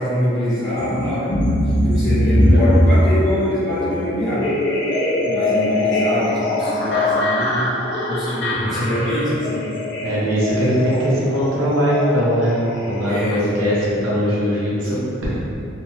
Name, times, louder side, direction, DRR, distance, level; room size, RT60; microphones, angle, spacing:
voice 1, 0.0-1.3 1.6-4.5 5.2-7.7 8.1-9.7 13.1-13.5 14.8-14.9, left 1 dB, 20° left, -17 dB, 0.9 m, -24 dB
sound 1, 0.8-13.4, left 1 dB, 55° left, 0.5 m, -21 dB
voice 2, 10.0-13.8 14.0-15.4, equal, 80° right, -7 dB, 0.8 m, -20 dB
2.6 x 2.2 x 3.0 m, 2.7 s
head